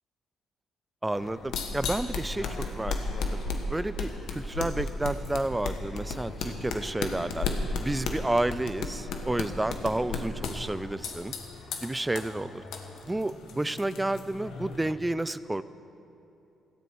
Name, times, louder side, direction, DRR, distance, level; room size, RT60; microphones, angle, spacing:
voice 1, 1.0-2.5 2.7-3.0 3.7-7.5 7.8-11.3 11.8-12.6 13.1-15.6, right 1 dB, 10° right, 15 dB, 0.4 m, -30 dB
sound 1, 1.1-14.9, left 3 dB, 80° left, 1.5 m, -35 dB
17.0 x 14.0 x 4.7 m, 2.9 s
cardioid pair, 90°, 0 cm